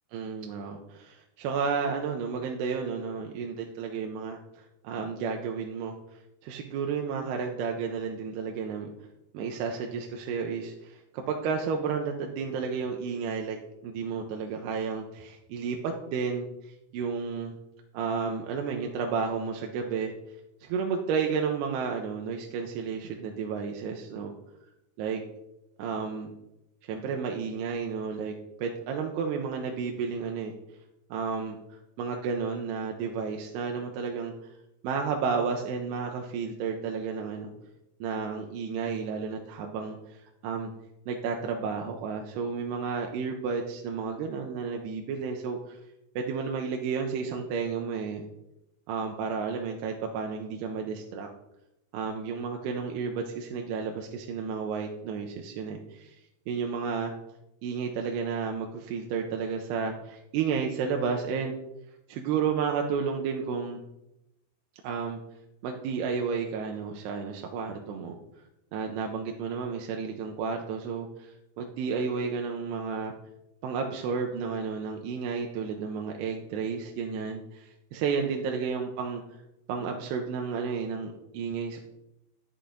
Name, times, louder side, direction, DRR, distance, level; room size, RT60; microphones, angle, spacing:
voice 1, 0.1-8.9 9.3-13.6 13.8-17.6 17.9-20.1 20.6-24.3 25.0-25.2 25.8-26.3 26.8-30.6 31.1-34.3 34.8-37.5 38.0-40.7 41.1-45.8 46.2-48.3 48.9-51.3 51.9-56.2 56.5-57.1 57.6-61.6 62.1-63.8 64.8-65.2 65.6-68.2 68.7-73.1 73.6-79.2 79.7-81.8, right 5 dB, 90° right, 2 dB, 2.8 m, -32 dB
10.0 x 6.9 x 3.8 m, 0.89 s
omnidirectional pair, 4.7 m